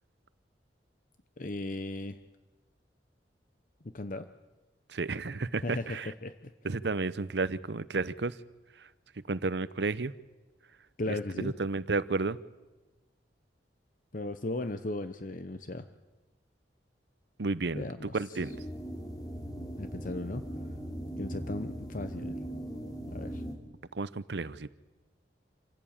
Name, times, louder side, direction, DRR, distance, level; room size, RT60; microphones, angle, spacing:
voice 1, 1.4-2.2 3.9-4.3 5.6-6.5 11.0-11.5 14.1-15.9 17.7-18.2 19.8-20.4 21.2-22.4 23.1-23.4, left 2 dB, 50° left, 10 dB, 0.9 m, -36 dB
voice 2, 4.9-6.1 6.6-8.4 9.3-10.1 11.1-12.4 17.4-17.8 18.1-18.5 23.9-24.7, right 3 dB, 70° right, 17 dB, 0.8 m, -32 dB
sound 1, 18.4-23.6, right 1 dB, 20° left, 3.4 m, -39 dB
27.0 x 16.0 x 8.8 m, 1.2 s
head